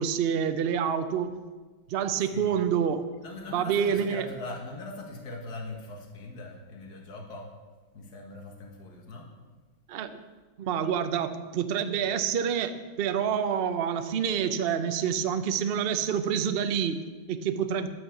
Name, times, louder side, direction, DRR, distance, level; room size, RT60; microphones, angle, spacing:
voice 1, 0.0-1.4 1.9-3.1 3.5-4.2 9.9-10.2 10.6-17.9, right 8 dB, 70° right, 9 dB, 0.5 m, -27 dB
voice 2, 3.2-7.5 7.9-9.3, left 2 dB, 55° left, 1 dB, 2.2 m, -41 dB
11.5 x 8.7 x 7.1 m, 1.4 s
omnidirectional pair, 2.1 m